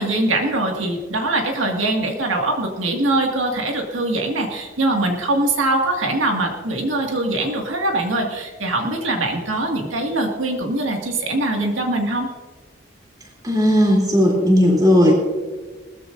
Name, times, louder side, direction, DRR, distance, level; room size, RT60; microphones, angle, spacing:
voice 1, 0.0-12.3, right 2 dB, 90° right, 1 dB, 2.0 m, -22 dB
voice 2, 13.4-15.2, equal, 20° right, -1 dB, 3.2 m, -15 dB
20.0 x 14.5 x 2.6 m, 1.4 s
head